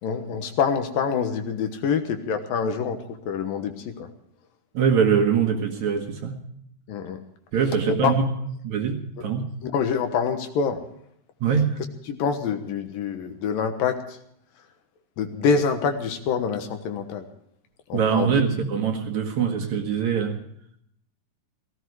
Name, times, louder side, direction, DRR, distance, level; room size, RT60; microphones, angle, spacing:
voice 1, 0.0-4.1 6.9-7.2 7.9-8.1 9.2-9.3 9.6-10.8 12.1-14.2 15.2-17.3 17.9-18.4, left 6 dB, 70° left, 7 dB, 2.9 m, -26 dB
voice 2, 4.7-6.3 7.5-8.3 8.6-9.5 11.4-11.8 17.9-20.4, right 6 dB, 60° right, 3 dB, 2.4 m, -23 dB
17.5 x 16.0 x 4.7 m, 0.71 s
omnidirectional pair, 4.3 m